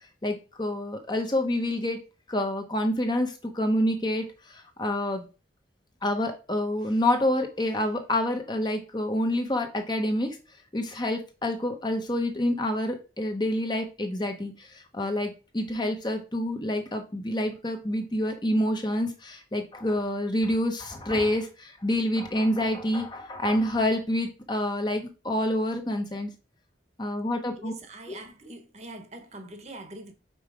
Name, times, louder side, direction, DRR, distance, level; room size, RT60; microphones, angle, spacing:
voice 1, 0.2-2.0 2.3-5.3 6.0-10.4 10.7-26.3 27.0-27.7 28.1-28.2, left 1 dB, 25° left, 0.9 m, -27 dB
voice 2, 27.6-30.1, right 2 dB, 35° right, 1.1 m, -43 dB
5.4 x 4.3 x 4.9 m
head